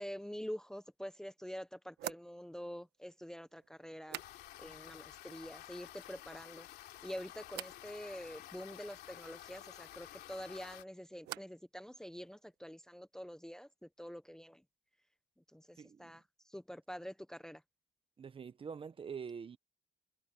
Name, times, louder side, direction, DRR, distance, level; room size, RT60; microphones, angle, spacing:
voice 1, 0.0-4.2 4.6-6.7 7.0-14.6 15.5-16.2 16.5-17.6, equal, 5° left, 0.9 m, -46 dB
sound 1, 0.7-0.8 2.0-4.8 5.1-5.7 6.0-6.6 7.5-7.8 10.3-11.7 12.0-12.6, right 15 dB, 80° right, 1.4 m, -50 dB
sound 2, 4.1-10.8, left 14 dB, 75° left, 3.2 m, -52 dB
voice 2, 15.8-16.1 18.2-19.6, right 6 dB, 30° right, 1.1 m, -45 dB
cardioid pair, 110°, 17 cm